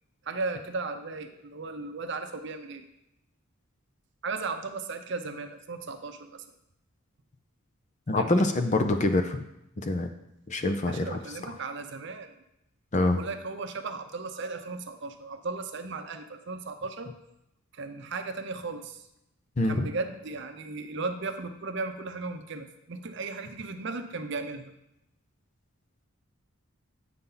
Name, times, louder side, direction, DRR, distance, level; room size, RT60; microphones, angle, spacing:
voice 1, 0.2-2.8 4.2-6.4 8.1-8.5 10.9-12.4 13.1-17.1 17.7-19.1 19.7-24.7, right 3 dB, 55° right, 7 dB, 0.6 m, -36 dB
voice 2, 8.1-9.4 9.8-10.1 10.5-11.2 12.9-13.2 19.6-19.9, left 2 dB, 35° left, 7 dB, 0.5 m, -25 dB
8.2 x 5.5 x 3.9 m, 0.82 s
head